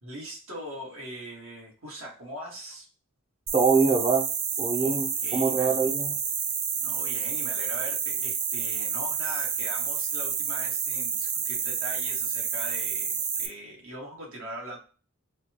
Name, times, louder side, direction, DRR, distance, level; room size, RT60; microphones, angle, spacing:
voice 1, 0.0-2.9 4.8-5.8 6.8-14.8, equal, 75° right, -2 dB, 1.7 m, -41 dB
voice 2, 3.5-4.3 4.6-5.1 5.3-6.1, right 4 dB, 25° right, 0 dB, 0.6 m, -23 dB
sound 1, 3.5-13.5, right 6 dB, 90° right, 0.6 m, -29 dB
4.1 x 2.3 x 2.9 m, 0.36 s
head